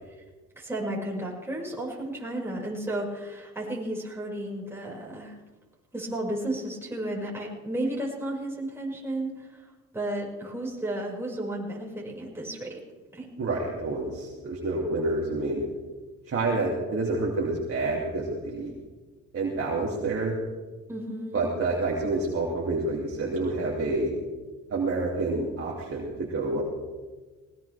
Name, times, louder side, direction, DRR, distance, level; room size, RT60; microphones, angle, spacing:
voice 1, 0.6-5.3 5.9-9.6 9.9-12.8 13.1-13.3 20.9-21.5, right 1 dB, 10° right, -4 dB, 5.8 m, -33 dB
voice 2, 13.4-15.6 16.3-18.7 19.3-20.4 21.3-24.1 24.7-26.6, right 2 dB, 50° right, -4 dB, 2.8 m, -28 dB
19.5 x 19.5 x 3.5 m, 1.3 s
cardioid pair, 90°, 30 cm